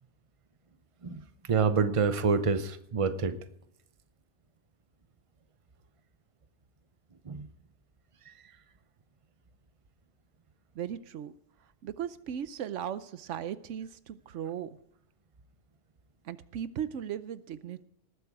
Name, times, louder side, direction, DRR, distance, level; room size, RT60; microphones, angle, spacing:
voice 1, 1.5-3.3 7.3-7.5, right 5 dB, 30° right, 11 dB, 0.8 m, -27 dB
voice 2, 10.7-11.3 11.8-14.8 16.2-17.8, right 9 dB, 85° right, 14 dB, 1.0 m, -37 dB
19.0 x 8.0 x 4.8 m, 0.77 s
omnidirectional pair, 1.2 m